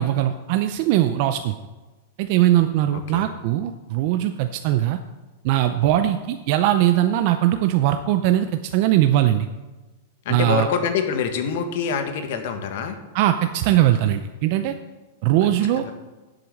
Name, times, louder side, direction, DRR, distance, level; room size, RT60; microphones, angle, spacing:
voice 1, 0.0-1.5 2.2-5.0 5.4-9.5 10.3-10.7 13.1-14.7 15.2-15.8, right 13 dB, 40° right, 8 dB, 0.5 m, -20 dB
voice 2, 10.2-13.0 15.8-15.9, left 6 dB, 50° left, 7 dB, 1.5 m, -25 dB
10.0 x 7.9 x 6.4 m, 1.2 s
supercardioid pair, 170°, 0 cm